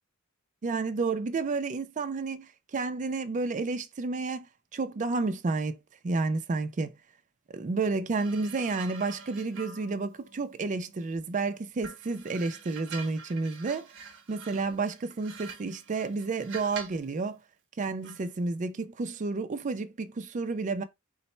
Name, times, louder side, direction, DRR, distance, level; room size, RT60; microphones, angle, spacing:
voice 1, 0.6-4.5 4.7-5.8 6.0-7.0 7.5-13.9 14.3-17.4 17.8-20.8, right 3 dB, 35° right, 0.4 m, -31 dB
sound 1, 8.1-11.4 11.8-17.1 18.0-18.3, right 5 dB, 60° right, 0.8 m, -46 dB
4.0 x 2.1 x 4.2 m
head